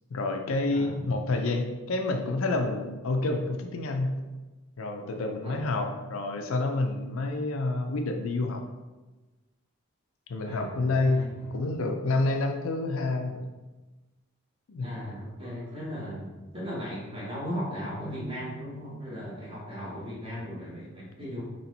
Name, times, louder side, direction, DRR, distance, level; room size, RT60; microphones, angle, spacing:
voice 1, 0.1-4.2 4.8-8.6 10.3-13.4 14.7-14.9, left 2 dB, 70° left, 4 dB, 0.5 m, -28 dB
voice 2, 0.7-1.2 5.4-5.7 10.4-11.5 14.8-21.5, equal, 25° right, -6 dB, 1.3 m, -37 dB
4.3 x 3.1 x 4.1 m, 1.2 s
head